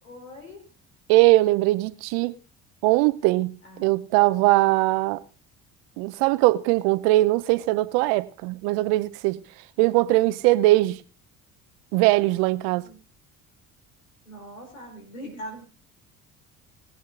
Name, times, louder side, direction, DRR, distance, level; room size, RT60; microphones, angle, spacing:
voice 1, 0.0-0.7 3.6-3.9 12.8-13.0 14.2-15.6, equal, 90° left, 4.0 m, -41 dB
voice 2, 1.1-2.3 2.8-5.2 6.0-9.4 9.8-11.0 11.9-12.9, right 19 dB, 70° right, 0.9 m, -21 dB
21.5 x 8.0 x 3.8 m
hypercardioid pair, 60°, 41 cm